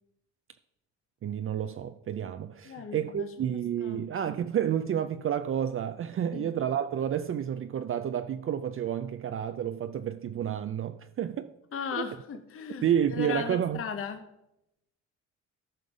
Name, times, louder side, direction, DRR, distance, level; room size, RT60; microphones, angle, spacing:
voice 1, 1.2-11.5 11.9-12.2 12.8-13.8, right 9 dB, 45° right, 0.5 m, -30 dB
voice 2, 2.7-3.3 3.8-4.0 6.3-6.5 11.7-14.2, left 7 dB, 45° left, 0.8 m, -36 dB
13.5 x 5.3 x 5.0 m
cardioid pair, 90°, 30 cm